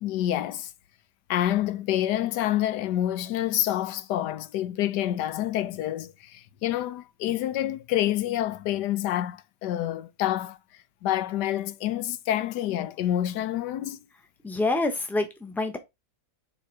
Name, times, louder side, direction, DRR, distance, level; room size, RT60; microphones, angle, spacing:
voice 1, 0.0-0.7 1.3-10.6 11.0-14.0, left 12 dB, 90° left, 1.3 m, -27 dB
voice 2, 14.4-15.8, left 2 dB, ahead, 0.9 m, -27 dB
7.0 x 3.5 x 4.7 m
omnidirectional pair, 1.8 m